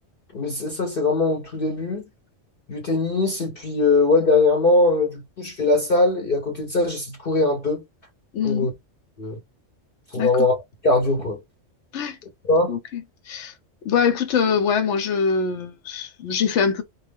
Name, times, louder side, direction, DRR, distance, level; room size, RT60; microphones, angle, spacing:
voice 1, 0.3-2.0 2.7-7.8 8.4-8.7 9.2-9.4 10.1-10.6 10.8-11.4 12.5-12.8, left 2 dB, 55° left, 1.0 m, -21 dB
voice 2, 8.3-8.7 10.2-10.3 11.9-12.2 12.7-13.5 13.8-16.8, left 6 dB, 80° left, 1.0 m, -23 dB
2.4 x 2.3 x 3.3 m
omnidirectional pair, 1.2 m